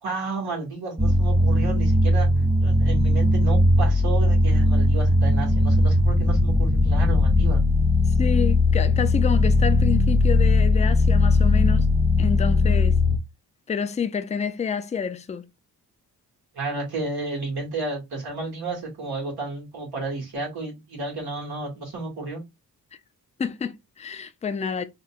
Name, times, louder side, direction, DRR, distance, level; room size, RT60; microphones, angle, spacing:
voice 1, 0.0-2.3 2.6-7.6 16.5-22.4, right 3 dB, 70° right, 1.6 m, -32 dB
sound 1, 1.0-13.2, left 2 dB, 10° right, 0.7 m, -19 dB
voice 2, 8.2-11.9 12.2-13.0 13.7-15.5 23.4-24.8, left 6 dB, 20° left, 0.3 m, -28 dB
3.8 x 2.2 x 2.4 m
cardioid pair, 65°, 39 cm